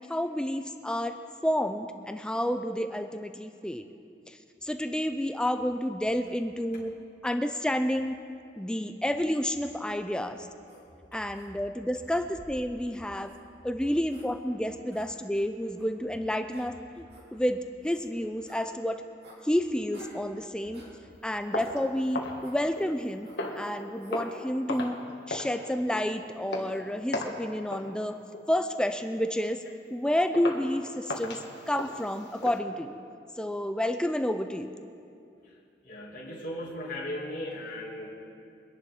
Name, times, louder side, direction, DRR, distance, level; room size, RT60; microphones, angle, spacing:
voice 1, 0.1-1.2 1.4-3.8 4.3-7.0 7.2-8.2 8.6-10.5 11.1-13.3 13.6-17.0 17.3-19.0 19.4-20.9 21.2-28.2 28.5-29.6 29.9-33.0 33.4-34.7, equal, 5° left, 8 dB, 0.4 m, -30 dB
sound 1, 10.7-10.8 11.3-11.5 12.1-12.6 13.2-13.4 14.1-14.3 14.9-15.1 15.7-15.9 16.5-16.7 17.1-17.3 17.8-18.0 18.4-18.6 19.2-19.4 19.9-20.2 20.7-20.9 21.6-21.8 22.4-22.6 23.2-23.5 24.0-24.2 24.7-24.9, right 1 dB, 65° right, 3.5 m, -52 dB
sound 2, 21.5-23.0 23.4-23.7 24.1-24.4 24.7-25.0 25.3-25.6 25.9-26.1 26.5-26.7 27.1-27.4 27.7-27.9 28.3-28.6 29.0-29.2 29.7-29.8 30.3-30.7 31.1-32.6, left 2 dB, 80° left, 1.7 m, -36 dB
voice 2, 35.8-38.1, left 1 dB, 50° left, -6 dB, 2.5 m, -37 dB
24.0 x 10.5 x 3.8 m, 2.5 s
head